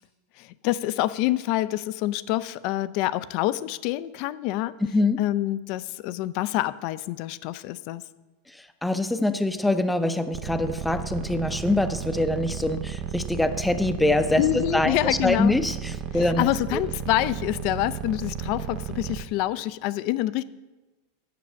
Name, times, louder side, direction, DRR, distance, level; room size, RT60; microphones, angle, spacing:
voice 1, 0.4-4.8 5.2-8.1 14.4-15.6 16.1-20.4, left 15 dB, 55° left, 16 dB, 0.4 m, -27 dB
voice 2, 8.8-16.8, left 2 dB, 5° left, 9 dB, 0.6 m, -24 dB
sound 1, 10.3-19.2, right 9 dB, 40° right, 0.7 m, -33 dB
9.5 x 6.9 x 6.3 m, 1.2 s
hypercardioid pair, 120°, 0 cm